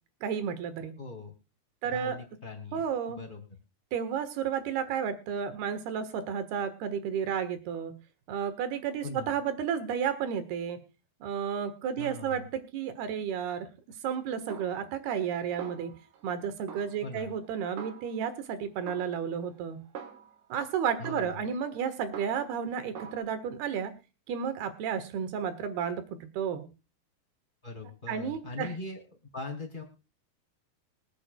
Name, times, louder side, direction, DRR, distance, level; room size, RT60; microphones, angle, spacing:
voice 1, 0.2-1.0 1.8-2.2 2.7-3.2 3.9-7.9 8.3-10.8 11.2-13.7 14.0-15.9 16.2-19.8 20.5-23.9 24.3-26.7 28.1-28.7, right 7 dB, 75° right, 10 dB, 3.4 m, -32 dB
voice 2, 1.0-1.3 1.8-3.4 9.0-9.3 12.0-12.5 17.0-17.3 21.0-21.4 27.6-29.8, left 3 dB, 10° left, 0 dB, 3.7 m, -41 dB
Snare drum, 14.5-15.3 15.6-16.4 16.7-18.5 18.9-20.5 21.0-22.6 23.0-23.2, right 8 dB, 60° right, 2.6 m, -46 dB
25.0 x 8.8 x 2.3 m, 0.31 s
omnidirectional pair, 4.7 m